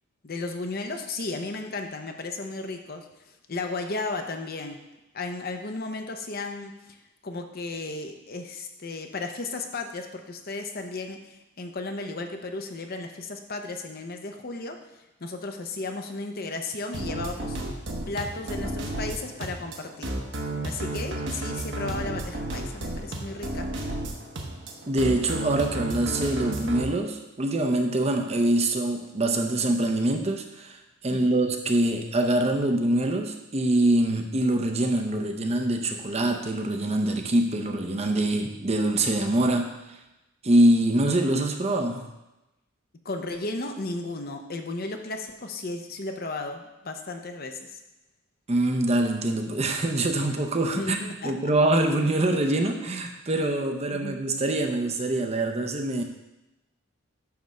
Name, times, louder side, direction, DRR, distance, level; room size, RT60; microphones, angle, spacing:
voice 1, 0.2-4.8 5.1-14.8 15.2-17.7 18.1-20.1 20.6-23.7 31.1-31.4 43.0-47.8 50.7-51.5 53.9-54.1, left 3 dB, 45° left, 5 dB, 0.7 m, -34 dB
sound 1, 16.9-26.8, right 1 dB, 55° right, 1.0 m, -32 dB
voice 2, 24.9-40.0 40.4-42.0 48.5-56.0, right 1 dB, 30° right, 4 dB, 0.6 m, -24 dB
9.4 x 3.5 x 6.4 m, 0.97 s
head